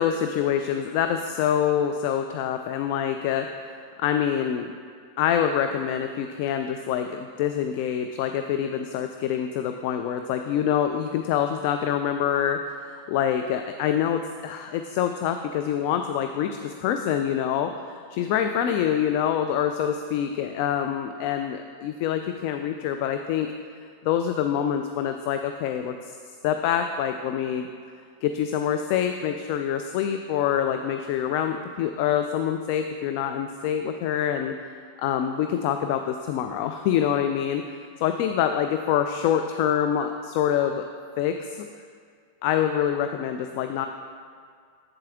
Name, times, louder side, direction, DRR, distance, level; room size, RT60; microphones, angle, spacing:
voice 1, 0.0-4.7 5.2-23.5 24.0-26.2 26.4-27.7 28.2-34.5 35.0-37.6 38.0-40.9 41.2-41.7 42.4-43.9, left 9 dB, 45° left, 7 dB, 0.3 m, -26 dB
7.8 x 7.4 x 3.6 m, 2.1 s
figure-of-eight pair, 90°, 0 cm